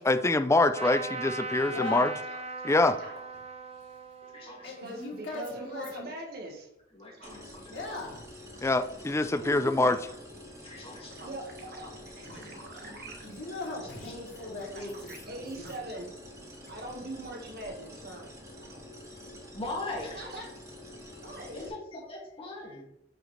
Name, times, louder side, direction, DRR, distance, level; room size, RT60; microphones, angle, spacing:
voice 1, 0.0-2.1 2.6-3.0 8.6-10.0, left 2 dB, 15° left, 11 dB, 0.4 m, -24 dB
Trumpet, 0.7-6.3, right 3 dB, 35° right, 0.6 m, -40 dB
voice 2, 1.7-2.1 4.6-6.0 7.7-8.2 12.2-12.6 12.8-12.9 13.2-15.1 15.6-15.7, left 2 dB, 80° left, -4 dB, 2.9 m, -38 dB
voice 3, 2.3-3.1 4.7-6.7 7.2-7.5 7.9-8.0 8.5-8.8 9.3-10.1 11.0-13.3 14.7-16.2 16.7-18.8 19.3-19.5 20.1-20.5 21.2-21.6, right 2 dB, 60° right, 2 dB, 1.6 m, -43 dB
voice 4, 4.3-4.7 6.9-7.8 9.2-9.3 10.6-11.2 12.0-13.0 13.8-14.1 14.6-14.9 15.2-15.4 19.5-20.3 20.9-21.0 21.5-22.8, left 2 dB, 30° left, -4 dB, 2.3 m, -42 dB
sound 1, 7.2-21.7, equal, 20° right, 2.0 m, -48 dB
9.0 x 4.9 x 3.2 m, 0.76 s
head